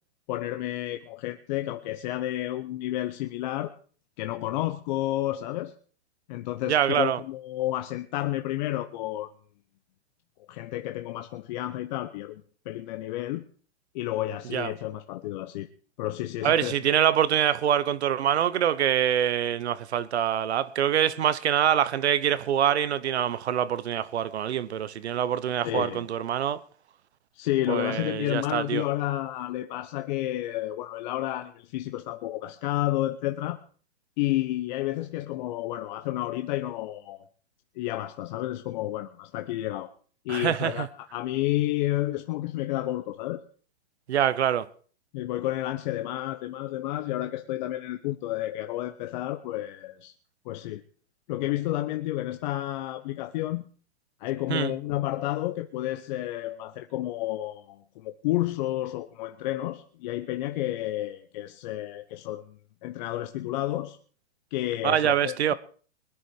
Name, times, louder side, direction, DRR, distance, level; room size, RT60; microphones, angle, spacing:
voice 1, 0.3-3.7 4.2-5.7 6.3-9.3 10.5-13.4 13.9-15.7 16.0-16.8 25.6-26.1 27.3-33.6 34.2-37.2 37.8-39.9 40.2-43.4 45.1-50.1 50.4-50.8 51.3-53.7 54.2-64.0 64.5-65.5, left 15 dB, 45° left, 1.0 m, -31 dB
voice 2, 6.7-7.2 14.5-14.7 16.4-26.6 27.7-28.8 40.3-40.9 44.1-44.7 54.5-54.7 64.8-65.5, right 10 dB, 75° right, 1.2 m, -25 dB
21.0 x 10.0 x 4.8 m
hypercardioid pair, 135°, 33 cm